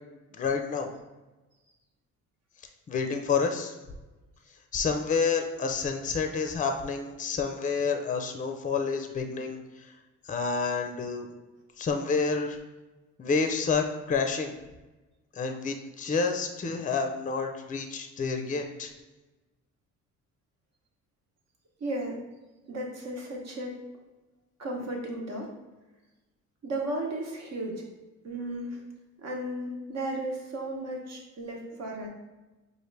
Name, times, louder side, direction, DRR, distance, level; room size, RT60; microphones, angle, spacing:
voice 1, 0.3-0.9 2.9-3.7 4.7-9.9 10.2-11.3 11.8-12.6 13.2-14.5 15.3-18.9, left 5 dB, 25° left, 5 dB, 0.5 m, -29 dB
voice 2, 21.8-22.2 22.7-23.8 24.6-25.5 26.6-27.9 28.2-28.8 29.2-32.1, right 1 dB, 60° right, 0 dB, 1.1 m, -34 dB
4.8 x 2.5 x 3.2 m, 1.1 s
cardioid pair, 90°, 30 cm